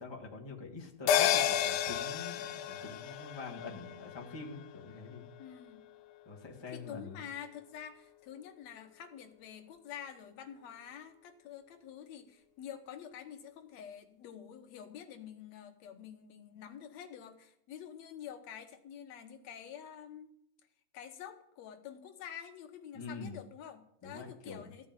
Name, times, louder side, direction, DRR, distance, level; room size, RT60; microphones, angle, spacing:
voice 1, 0.0-5.3 6.2-7.2 22.9-23.4 24.0-24.7, left 4 dB, 40° left, -1 dB, 0.3 m, -45 dB
sound 1, 1.1-5.8 6.1-6.2, left 9 dB, 90° left, 2.2 m, -32 dB
voice 2, 5.4-5.9 6.7-20.3 20.9-24.9, left 9 dB, 65° left, 6 dB, 2.2 m, -48 dB
14.5 x 5.4 x 8.9 m, 0.74 s
omnidirectional pair, 3.5 m